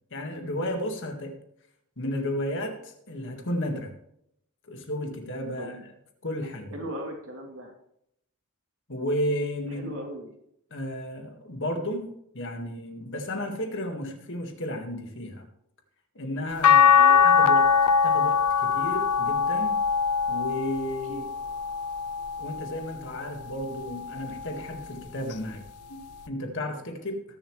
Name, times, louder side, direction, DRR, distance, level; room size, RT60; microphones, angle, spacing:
voice 1, 0.1-1.4 2.0-3.9 4.7-5.9 6.2-6.8 8.9-9.9 10.7-15.4 16.2-19.8 20.3-21.3 22.4-25.6 25.9-27.2, left 1 dB, 55° left, 4 dB, 1.8 m, -33 dB
voice 2, 6.7-7.7 9.7-10.3 17.0-17.2 21.1-21.2, right 1 dB, 65° right, 1 dB, 2.9 m, -38 dB
sound 1, 16.6-22.9 23.5-24.9 26.3-26.4, left 6 dB, 85° left, 0.6 m, -22 dB
20.5 x 7.1 x 3.2 m, 0.76 s
head